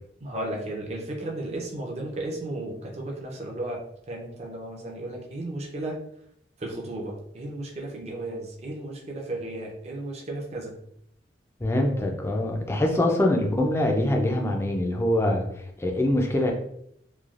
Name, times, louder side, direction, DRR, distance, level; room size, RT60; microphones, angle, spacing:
voice 1, 0.2-6.0 6.6-10.7 12.9-13.0, right 1 dB, 35° right, 0 dB, 0.5 m, -34 dB
voice 2, 11.6-15.4 15.8-16.5, left 1 dB, 15° left, 2 dB, 0.4 m, -24 dB
3.1 x 2.3 x 2.4 m, 0.72 s
head